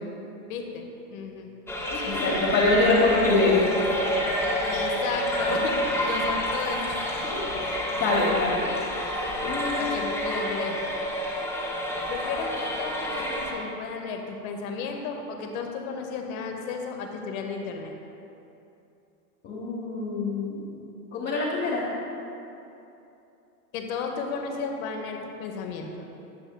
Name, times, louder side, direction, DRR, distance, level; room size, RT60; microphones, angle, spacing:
voice 1, 0.5-0.8 1.1-1.5 1.9-2.3 4.7-7.3 9.8-10.9 12.1-17.9 23.7-26.1, left 5 dB, 60° left, 3 dB, 0.9 m, -34 dB
sound 1, 1.7-13.5, equal, 5° left, 0.7 m, -28 dB
voice 2, 2.0-3.6 7.6-8.7 9.4-10.0 19.4-20.7 21.1-21.8, left 3 dB, 40° left, -6 dB, 1.1 m, -24 dB
9.6 x 6.1 x 2.2 m, 2.8 s
hypercardioid pair, 115°, 47 cm